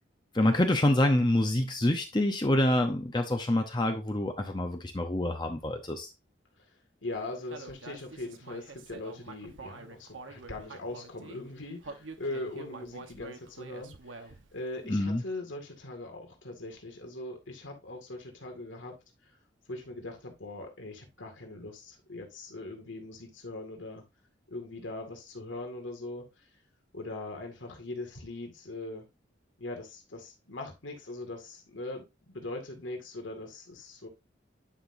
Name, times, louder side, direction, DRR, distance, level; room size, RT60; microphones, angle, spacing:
voice 1, 0.3-6.1 14.9-15.2, left 1 dB, 25° left, 0.8 m, -26 dB
voice 2, 7.0-19.0 19.2-19.3 19.7-24.0 24.5-26.5 26.9-29.0 29.6-34.1, left 2 dB, 80° left, 2.1 m, -41 dB
Human voice, 7.5-11.4 11.8-14.5, right 3 dB, 85° right, 1.1 m, -46 dB
10.0 x 5.9 x 2.6 m
head